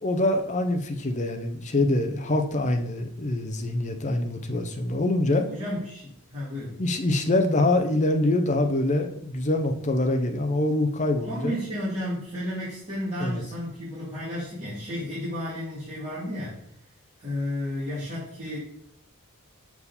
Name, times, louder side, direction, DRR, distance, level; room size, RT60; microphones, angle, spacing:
voice 1, 0.0-5.5 6.8-11.6 13.2-13.4, left 2 dB, 30° left, 5 dB, 0.7 m, -25 dB
voice 2, 5.5-6.8 11.3-16.6 17.2-18.6, left 1 dB, 30° right, -11 dB, 2.5 m, -32 dB
7.0 x 4.7 x 4.1 m, 0.69 s
head